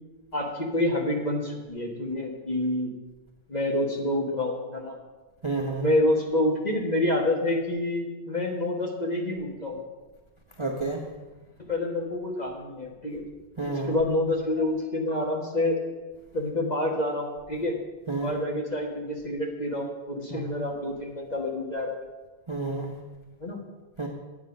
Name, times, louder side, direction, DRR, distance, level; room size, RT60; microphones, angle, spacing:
voice 1, 0.3-2.9 3.5-4.9 5.8-9.8 11.7-13.2 13.7-15.8 16.3-17.7 18.1-22.0 23.4-23.6, left 1 dB, 25° left, 0 dB, 1.2 m, -27 dB
voice 2, 5.4-5.9 10.6-11.0 13.6-13.9 18.1-18.3 20.3-20.4 22.5-22.9 24.0-24.1, right 3 dB, 30° right, 0 dB, 0.5 m, -30 dB
8.8 x 8.6 x 5.3 m, 1.2 s
omnidirectional pair, 2.0 m